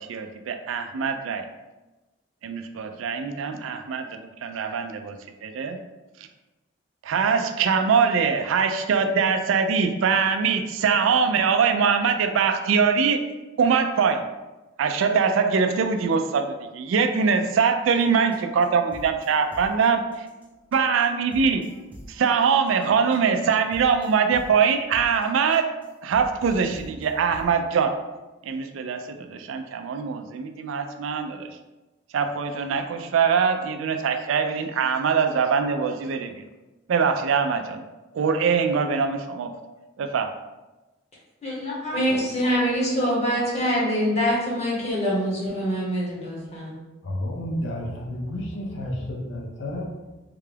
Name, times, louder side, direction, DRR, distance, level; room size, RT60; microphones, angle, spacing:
voice 1, 0.0-1.4 2.4-5.8 7.0-13.2 13.6-14.3 14.8-20.0 20.7-21.7 22.1-25.7 26.0-28.0 28.4-31.5 32.1-36.4 36.9-37.8 38.1-39.5 40.0-40.3, right 6 dB, 75° right, 7 dB, 0.3 m, -23 dB
sound 1, 18.0-27.5, equal, 10° right, 0.6 m, -46 dB
voice 2, 41.4-46.8, equal, 35° left, -5 dB, 1.1 m, -24 dB
voice 3, 47.0-49.9, left 1 dB, 65° left, -1 dB, 0.7 m, -31 dB
3.7 x 2.3 x 3.3 m, 1.1 s
head